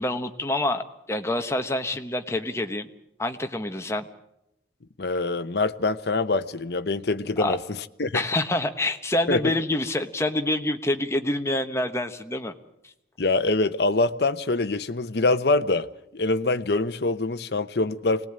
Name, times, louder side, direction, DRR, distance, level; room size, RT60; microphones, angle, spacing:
voice 1, 0.0-2.9 3.2-4.0 7.4-7.6 8.1-12.5, left 1 dB, 15° left, 1.2 m, -27 dB
voice 2, 5.0-8.2 9.3-9.5 13.2-15.9 16.1-18.3, left 2 dB, 60° left, 0.8 m, -24 dB
25.5 x 19.0 x 8.8 m
head